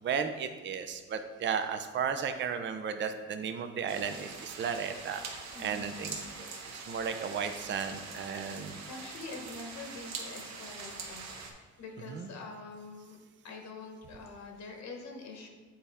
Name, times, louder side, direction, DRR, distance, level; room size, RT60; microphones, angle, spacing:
voice 1, 0.0-5.2 5.6-6.2 6.7-8.8 12.0-12.3, right 6 dB, 40° right, 8 dB, 0.5 m, -34 dB
sound 1, 3.9-11.5, right 4 dB, 65° right, 1.1 m, -43 dB
voice 2, 5.5-6.1 6.3-6.8 8.8-13.2 13.4-15.5, left 3 dB, 65° left, 2 dB, 1.1 m, -46 dB
7.6 x 4.2 x 3.5 m, 1.3 s
cardioid pair, 90°, 30 cm